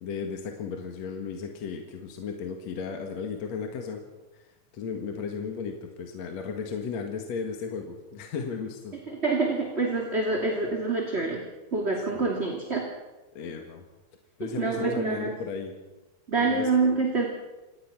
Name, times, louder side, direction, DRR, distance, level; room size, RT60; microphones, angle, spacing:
voice 1, 0.0-4.0 4.3-9.0 12.1-12.3 13.3-13.8 14.4-15.7 16.5-16.7, left 5 dB, 60° left, 3 dB, 2.9 m, -35 dB
voice 2, 9.1-11.4 11.7-12.8 14.4-15.4 16.3-17.2, right 3 dB, 20° right, 1 dB, 2.7 m, -26 dB
27.0 x 18.5 x 6.0 m, 1.1 s
omnidirectional pair, 3.5 m